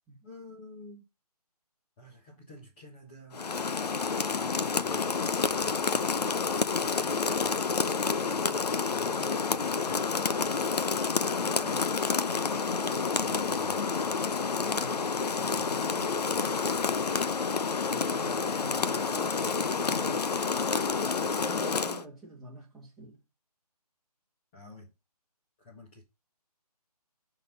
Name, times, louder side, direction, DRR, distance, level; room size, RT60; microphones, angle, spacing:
voice 1, 0.2-1.0 2.0-3.4 4.1-5.9 8.9-10.2 12.4-13.8 24.5-24.9 25.6-26.0, left 1 dB, 15° left, 1.3 m, -49 dB
Rain, 3.3-22.0, left 5 dB, 80° left, 0.8 m, -29 dB
voice 2, 11.4-11.9 14.7-16.1 17.9-20.3 21.4-23.2, right 1 dB, ahead, 2.0 m, -47 dB
10.5 x 4.1 x 5.5 m
hypercardioid pair, 170°, 20 cm